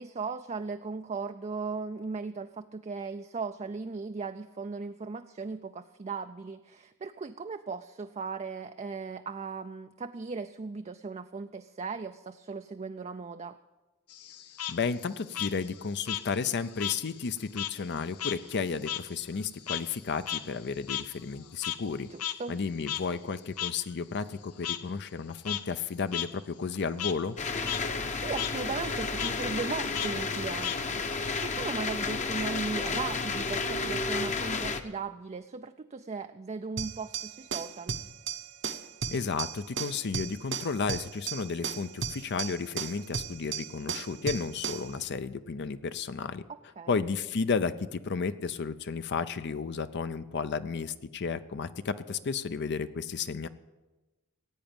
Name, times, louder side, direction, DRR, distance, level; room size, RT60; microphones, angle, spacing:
voice 1, 0.0-13.6 22.1-22.6 28.1-38.0 46.5-47.0, right 4 dB, 30° right, 8 dB, 0.4 m, -37 dB
Frog, 14.1-17.0 17.3-21.9 22.2-22.3 22.9-23.0 23.6-23.7 24.6-24.8 25.3-25.6 26.1-26.3 26.6-27.1 27.5-27.8 28.1-28.5 29.2-29.3 29.9-31.2, left 11 dB, 80° left, 0.8 m, -35 dB
voice 2, 14.7-22.1 22.5-27.4 39.1-46.4 46.9-53.5, left 5 dB, 50° left, 12 dB, 0.5 m, -33 dB
sound 1, 27.4-34.8, left 4 dB, 35° left, 0.9 m, -32 dB
sound 2, 36.8-44.9, right 6 dB, 55° right, 0.9 m, -36 dB
15.5 x 9.0 x 8.8 m, 1.1 s
head